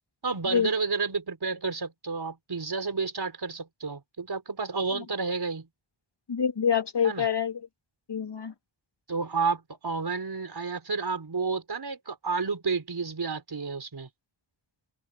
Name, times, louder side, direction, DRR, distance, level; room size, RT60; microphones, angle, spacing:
voice 1, 0.2-5.7 7.0-7.3 9.1-14.1, right 4 dB, 55° right, 5.0 m, -31 dB
voice 2, 6.3-7.6 8.1-8.5, left 7 dB, 65° left, 2.5 m, -26 dB
open air
wide cardioid pair, 100°, 46 cm